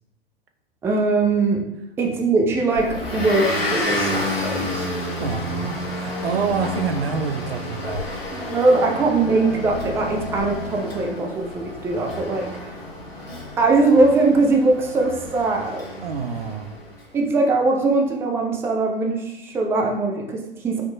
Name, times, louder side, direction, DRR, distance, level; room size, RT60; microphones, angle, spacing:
voice 1, 0.8-1.6 2.0-4.9 8.3-12.7 13.6-15.9 17.1-20.8, right 3 dB, 10° right, 1 dB, 0.4 m, -21 dB
Motor vehicle (road) / Engine, 2.7-16.9, left 1 dB, 80° left, 1.2 m, -30 dB
voice 2, 5.2-8.1 15.9-16.7, right 6 dB, 80° right, 6 dB, 0.5 m, -27 dB
4.4 x 2.9 x 2.3 m, 0.88 s
figure-of-eight pair, 100°, 29 cm